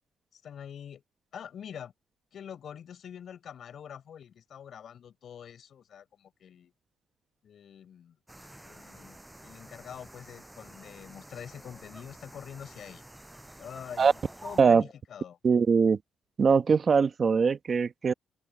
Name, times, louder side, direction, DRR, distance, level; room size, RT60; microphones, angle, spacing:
voice 1, 0.3-1.0 1.3-1.9 2.3-6.7 7.4-8.2 8.6-13.0 13.6-15.4, left 8 dB, 55° left, 5.8 m, -45 dB
sound 1, 8.3-14.6, right 1 dB, 5° right, 6.2 m, -49 dB
voice 2, 15.4-16.0 16.4-18.1, right 5 dB, 35° right, 1.0 m, -22 dB
open air
cardioid pair, 130°, 0 cm